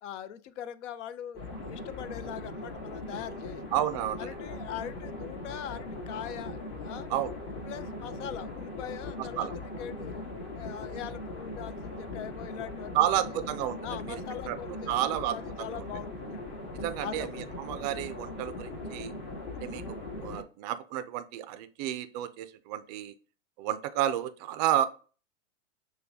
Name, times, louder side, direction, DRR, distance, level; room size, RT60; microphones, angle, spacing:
voice 1, 0.0-3.6 4.2-7.1 7.6-10.2 10.6-13.4 13.8-16.5 16.9-17.6, left 10 dB, 60° left, 0.6 m, -42 dB
sound 1, 1.3-20.4, left 2 dB, 40° left, 1.8 m, -40 dB
voice 2, 3.7-4.3 7.1-7.3 9.2-9.5 12.9-13.8 14.1-14.2 14.5-14.6 14.9-15.8 16.8-17.3 17.6-19.1 19.6-19.8 20.2-23.1 23.6-24.9, right 12 dB, 35° right, 0.4 m, -31 dB
6.5 x 2.2 x 2.7 m
hypercardioid pair, 130°, 41 cm